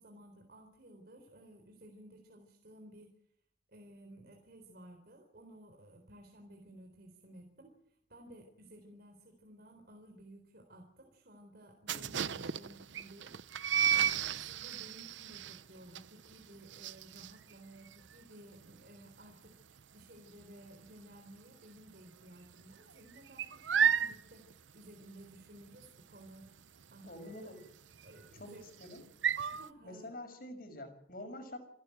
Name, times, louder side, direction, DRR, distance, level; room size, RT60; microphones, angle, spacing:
voice 1, 0.0-3.1 3.7-26.5 26.9-27.5 28.0-28.7 29.4-30.1, right 1 dB, 55° right, 3 dB, 4.0 m, -56 dB
voice 2, 11.9-12.4 27.0-27.6 28.4-29.0 29.8-31.6, left 1 dB, 50° left, 6 dB, 6.2 m, -47 dB
sound 1, 11.9-21.4 21.6-22.0 22.3-29.7, right 8 dB, 85° right, 0.7 m, -34 dB
29.0 x 11.5 x 9.2 m, 0.72 s
head